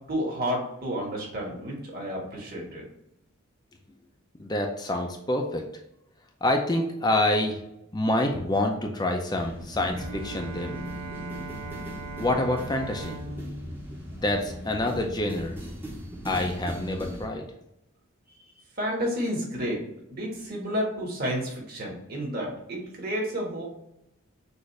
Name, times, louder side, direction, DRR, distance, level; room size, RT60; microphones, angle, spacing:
voice 1, 0.1-2.8 18.8-19.8 20.1-23.6, equal, 45° right, -2 dB, 1.6 m, -31 dB
voice 2, 4.4-5.6 6.4-7.6 7.9-10.8 12.2-13.2 14.1-15.5 16.2-17.4, left 1 dB, 20° left, 2 dB, 0.5 m, -27 dB
sound 1, 9.4-17.3, equal, 10° right, 0.8 m, -38 dB
Bowed string instrument, 9.9-15.2, right 3 dB, 75° right, 0.6 m, -41 dB
6.3 x 2.6 x 3.2 m, 0.82 s
head